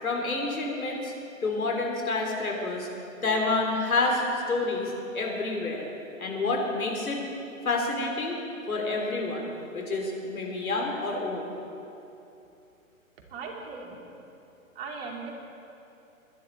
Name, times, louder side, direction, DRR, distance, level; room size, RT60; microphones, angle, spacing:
voice 1, 0.0-1.1 1.4-2.9 3.2-5.9 6.2-7.2 7.6-8.4 8.7-11.5, left 3 dB, 85° left, 0 dB, 3.3 m, -28 dB
voice 2, 13.3-14.0 14.7-15.3, right 4 dB, 45° right, -1 dB, 2.8 m, -38 dB
21.5 x 11.0 x 4.6 m, 2.8 s
hypercardioid pair, 140°, 41 cm